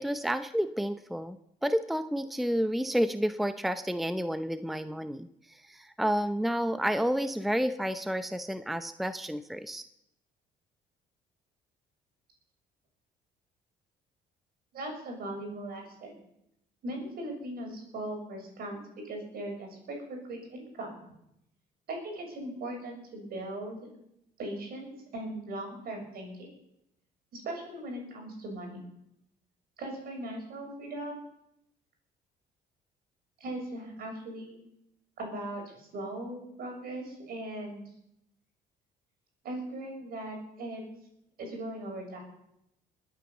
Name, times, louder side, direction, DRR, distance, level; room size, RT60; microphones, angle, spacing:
voice 1, 0.0-9.8, equal, ahead, 10 dB, 0.7 m, -30 dB
voice 2, 14.7-16.2 16.8-20.9 21.9-23.8 24.4-26.5 27.3-28.8 29.8-31.2 33.4-34.6 35.2-37.9 39.4-40.8 41.4-42.2, right 1 dB, 65° right, 2 dB, 6.9 m, -39 dB
21.0 x 9.4 x 7.3 m, 0.81 s
cardioid pair, 110°, 17 cm